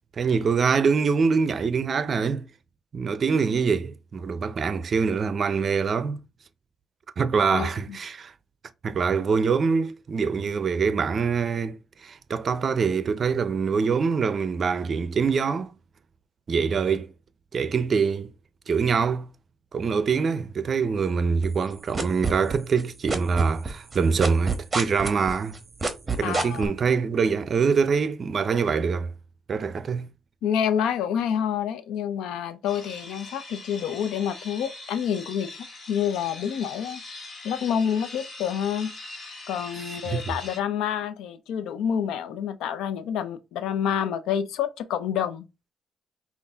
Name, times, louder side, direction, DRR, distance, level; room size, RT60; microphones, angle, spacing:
voice 1, 0.2-2.5 2.9-6.2 7.2-8.3 8.8-15.7 16.5-17.1 17.5-18.3 18.7-19.3 19.7-25.6 26.1-29.1 29.5-30.1 40.1-40.3, right 5 dB, 45° right, 0.5 m, -24 dB
voice 2, 7.5-8.0 26.2-26.7 30.4-37.0 37.4-38.9 39.5-45.5, left 8 dB, 90° left, 0.5 m, -28 dB
sound 1, 21.4-22.8 23.1-26.7, right 4 dB, 20° right, 1.0 m, -27 dB
sound 2, 32.7-40.6, left 2 dB, 55° left, 1.6 m, -42 dB
5.3 x 2.5 x 3.4 m
cardioid pair, 90°, 0 cm